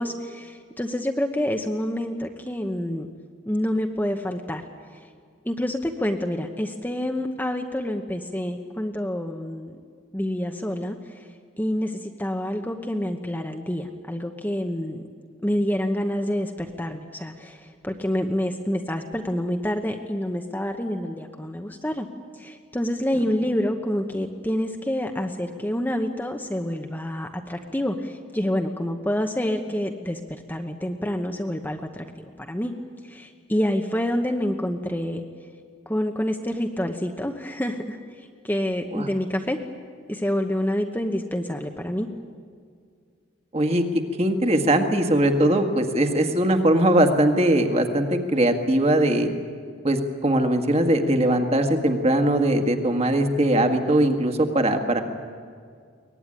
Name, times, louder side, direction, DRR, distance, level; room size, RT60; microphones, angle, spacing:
voice 1, 0.0-3.1 3.5-4.6 5.4-9.8 10.1-11.3 11.6-15.0 15.4-22.1 22.4-30.2 30.5-32.7 33.0-35.2 35.9-39.6 40.1-42.1, equal, 10° left, 4 dB, 1.0 m, -27 dB
voice 2, 43.5-43.8 44.2-49.3 49.8-55.0, right 1 dB, 30° right, 6 dB, 1.7 m, -20 dB
23.0 x 19.5 x 10.0 m, 2.1 s
head